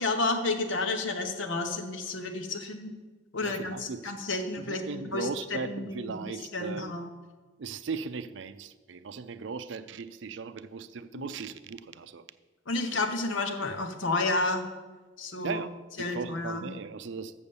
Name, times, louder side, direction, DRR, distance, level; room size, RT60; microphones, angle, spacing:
voice 1, 0.0-2.9 3.3-7.1 11.1-11.3 12.7-14.6 15.2-15.6 16.0-16.7, left 3 dB, 85° left, 5 dB, 1.0 m, -31 dB
voice 2, 3.4-4.1 4.6-7.0 7.6-12.2 15.4-17.3, right 5 dB, 75° right, 13 dB, 0.4 m, -38 dB
7.0 x 6.6 x 7.0 m, 1.3 s
head